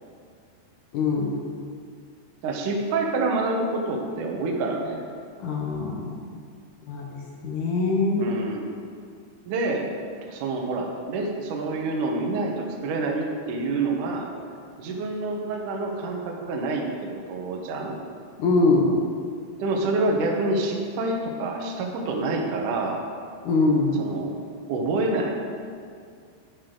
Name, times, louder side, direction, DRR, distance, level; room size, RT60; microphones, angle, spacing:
voice 1, 0.9-1.3 5.4-6.2 6.8-8.3 18.4-18.9 23.4-24.0, left 3 dB, 75° left, -1 dB, 1.9 m, -23 dB
voice 2, 2.4-5.0 8.2-8.7 9.5-9.9 10.3-14.3 14.8-18.0 19.6-23.0 24.0-24.4 24.7-25.4, right 2 dB, 70° right, 0 dB, 1.9 m, -27 dB
13.5 x 8.4 x 3.9 m, 2.2 s
omnidirectional pair, 5.3 m